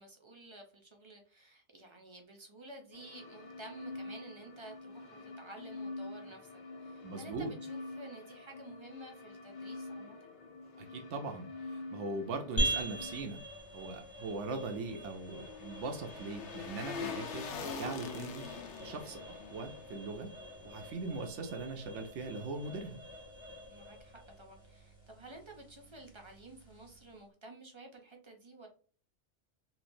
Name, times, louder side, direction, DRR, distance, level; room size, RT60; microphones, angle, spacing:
voice 1, 0.0-6.5 6.8-10.3 23.7-28.7, right 2 dB, 35° right, 3 dB, 0.6 m, -52 dB
sound 1, 2.9-13.2, left 2 dB, 50° left, 0.6 m, -46 dB
voice 2, 7.0-7.5 10.8-13.4 13.7-18.5 18.8-19.2 19.5-20.3 20.6-23.0, right 3 dB, 80° right, 4 dB, 0.9 m, -40 dB
sound 2, 12.6-27.2, right 1 dB, 25° left, 1.2 m, -42 dB
sound 3, 14.2-21.4 21.7-21.8, left 6 dB, 80° left, 0.9 m, -45 dB
3.1 x 2.8 x 2.6 m, 0.41 s
omnidirectional pair, 1.2 m